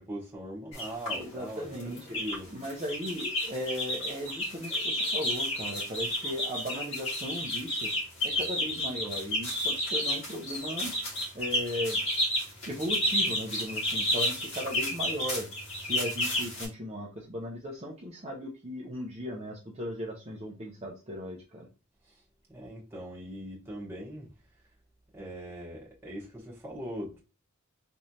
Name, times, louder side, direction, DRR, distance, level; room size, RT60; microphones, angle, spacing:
voice 1, 0.0-2.5 22.0-22.2 22.5-24.3 25.1-27.2, equal, 10° right, 1.3 m, -41 dB
sound 1, 0.7-1.2 1.7-2.4 2.6-16.7, left 1 dB, 60° left, 1.9 m, -31 dB
voice 2, 1.1-7.9 8.2-10.9 11.3-12.0 12.7-15.5 15.8-21.7, equal, 30° right, 0.7 m, -37 dB
3.4 x 3.2 x 2.8 m
head